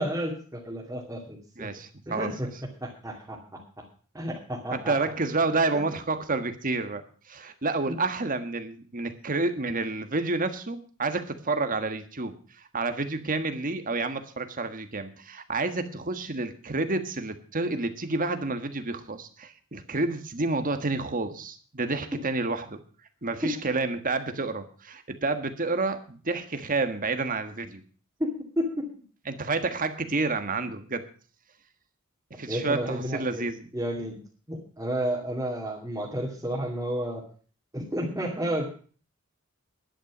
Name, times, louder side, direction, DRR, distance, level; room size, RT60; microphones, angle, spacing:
voice 1, 0.0-1.7 2.1-2.5 2.8-3.8 4.1-5.0 5.7-5.8 7.9-8.0 22.1-22.2 23.4-23.5 28.2-28.9 32.5-33.5 33.7-34.2 34.5-37.2 37.7-38.7, equal, 15° right, -4 dB, 2.4 m, -31 dB
voice 2, 1.6-2.3 4.7-22.8 23.2-27.8 29.3-31.1 32.3-33.7, right 3 dB, 40° right, 9 dB, 1.5 m, -29 dB
12.0 x 10.0 x 6.1 m, 0.41 s
head